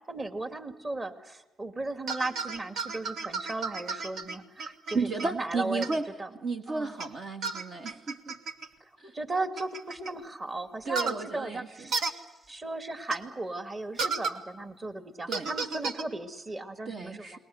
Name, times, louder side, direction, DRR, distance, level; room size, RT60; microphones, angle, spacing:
voice 1, 0.1-5.9 6.2-6.3 6.7-6.9 9.1-17.4, right 2 dB, 30° right, 9 dB, 2.3 m, -36 dB
sound 1, 2.1-5.3 5.8-6.0 7.0-7.1 7.4-8.7 9.6-10.1 11.0-11.2 11.9-12.1 13.1-13.2 14.0-14.4 15.3-16.0, right 4 dB, 70° right, 1.8 m, -33 dB
voice 2, 4.9-6.1 6.4-8.3 9.0-9.2 10.9-11.9 15.3-15.5 16.9-17.4, right 4 dB, 55° right, 5 dB, 1.9 m, -33 dB
29.0 x 21.0 x 7.9 m, 1.1 s
cardioid pair, 90°, 0 cm